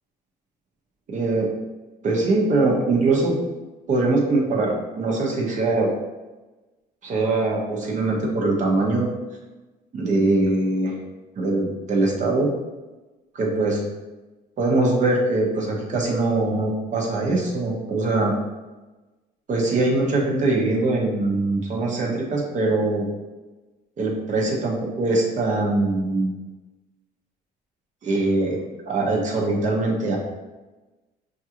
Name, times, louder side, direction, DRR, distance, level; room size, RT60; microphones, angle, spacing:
voice 1, 1.1-1.5 2.0-3.3 3.9-5.9 7.0-9.1 9.9-10.9 11.4-12.5 13.3-13.8 14.6-18.3 19.5-23.1 24.0-26.3 28.0-30.2, right 2 dB, 45° right, -2 dB, 0.9 m, -22 dB
5.3 x 2.4 x 2.9 m, 1.1 s
cardioid pair, 110°, 17 cm